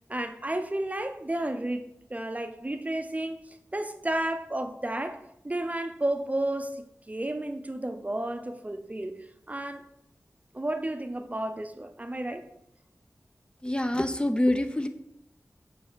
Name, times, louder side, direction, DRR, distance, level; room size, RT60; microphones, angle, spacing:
voice 1, 0.1-9.9 10.5-12.5, right 1 dB, 25° right, 0.6 m, -32 dB
voice 2, 13.6-14.9, left 1 dB, 15° left, 0.6 m, -26 dB
6.7 x 4.3 x 4.0 m
cardioid pair, 45°, 6 cm